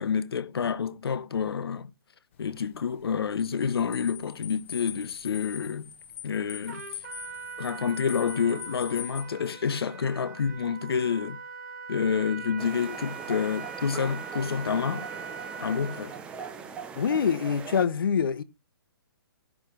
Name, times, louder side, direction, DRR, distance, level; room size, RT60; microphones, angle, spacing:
voice 1, 0.0-1.9 2.4-5.9 6.2-6.8 7.6-11.4 11.9-15.1 15.6-16.1, left 6 dB, 80° left, 1.0 m, -28 dB
sound 1, 2.3-9.2, left 9 dB, 30° left, 1.2 m, -42 dB
Trumpet, 6.7-16.2, right 6 dB, 35° right, 2.4 m, -41 dB
sound 2, 12.6-17.8, right 6 dB, 10° right, 0.8 m, -41 dB
voice 2, 16.9-18.4, left 7 dB, 60° left, 1.2 m, -25 dB
15.5 x 6.2 x 5.0 m
hypercardioid pair, 170°, 13 cm